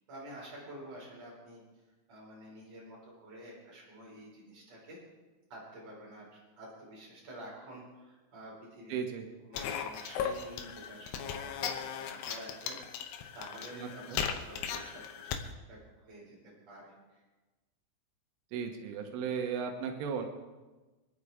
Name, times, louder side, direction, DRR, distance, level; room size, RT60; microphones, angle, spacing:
voice 1, 0.1-1.6 2.1-5.0 5.5-12.8 13.3-15.0 15.7-17.2, right 1 dB, 35° right, -5 dB, 5.5 m, -49 dB
voice 2, 8.9-9.3 13.7-14.2 18.5-20.3, right 6 dB, 90° right, 4 dB, 3.7 m, -36 dB
sound 1, 9.5-15.5, left 8 dB, 75° left, 2.9 m, -37 dB
26.0 x 9.8 x 3.6 m, 1.2 s
omnidirectional pair, 5.5 m